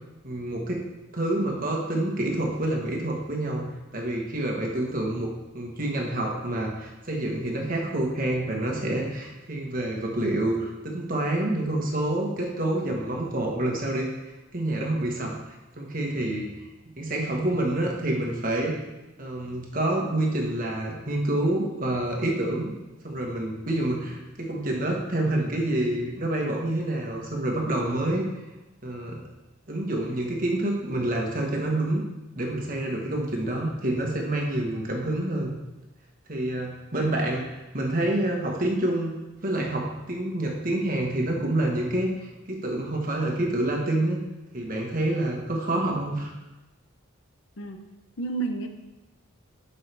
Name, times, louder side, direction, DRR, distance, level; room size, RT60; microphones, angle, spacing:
voice 1, 0.2-0.8 1.1-3.7 3.9-14.1 14.5-15.4 15.8-16.5 17.0-18.7 19.2-22.7 23.0-28.2 28.8-29.2 29.7-32.0 32.3-35.5 36.3-39.1 39.4-44.2 44.5-46.3, right 1 dB, 40° right, 0 dB, 1.3 m, -27 dB
voice 2, 48.2-48.7, right 3 dB, 60° left, 6 dB, 0.8 m, -32 dB
12.0 x 5.6 x 3.4 m, 1.0 s
head